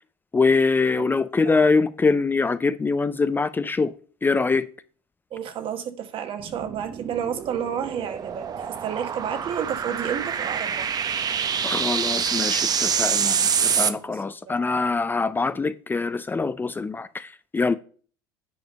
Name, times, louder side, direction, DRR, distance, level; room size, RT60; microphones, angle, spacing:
voice 1, 0.3-3.9 4.2-4.7 11.6-17.8, left 4 dB, 15° left, 0.5 m, -23 dB
voice 2, 5.3-10.9 13.8-14.1 14.4-14.6, right 8 dB, 50° right, 1.4 m, -31 dB
sound 1, 6.4-13.9, right 7 dB, 35° right, 0.7 m, -26 dB
9.4 x 5.0 x 5.2 m
hypercardioid pair, 85°, 11 cm